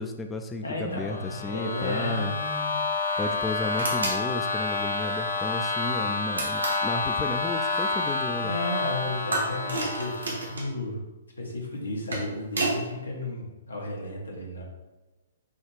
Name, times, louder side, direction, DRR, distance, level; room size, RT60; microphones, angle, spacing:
voice 1, 0.0-2.3 3.2-8.6, left 2 dB, 15° left, 5 dB, 0.3 m, -33 dB
voice 2, 0.6-2.8 8.4-11.1 11.4-14.6, left 1 dB, 85° left, -1 dB, 1.3 m, -33 dB
sound 1, 0.9-10.6, left 4 dB, 70° left, 0.9 m, -29 dB
sound 2, 3.8-4.2 6.3-6.9 9.3-10.7 11.8-12.8, right 2 dB, 85° right, 1.5 m, -30 dB
6.2 x 2.3 x 3.4 m, 1.1 s
hypercardioid pair, 125°, 0 cm